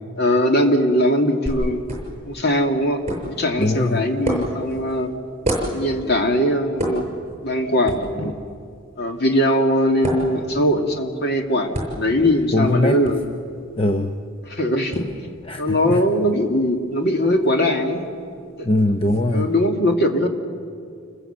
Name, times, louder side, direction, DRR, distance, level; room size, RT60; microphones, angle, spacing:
voice 1, 0.2-1.8 2.3-5.1 5.7-7.1 7.4-8.3 9.0-13.2 14.5-15.1 15.6-18.0 19.3-20.3, equal, 50° left, 4 dB, 2.1 m, -20 dB
sound 1, 1.5-19.2, right 1 dB, 30° right, 6.6 m, -33 dB
voice 2, 3.6-4.1 8.2-8.3 12.5-13.0 13.8-14.1 15.5-16.0 18.6-19.5, left 1 dB, 25° left, 5 dB, 0.8 m, -21 dB
28.5 x 21.0 x 8.0 m, 2.3 s
head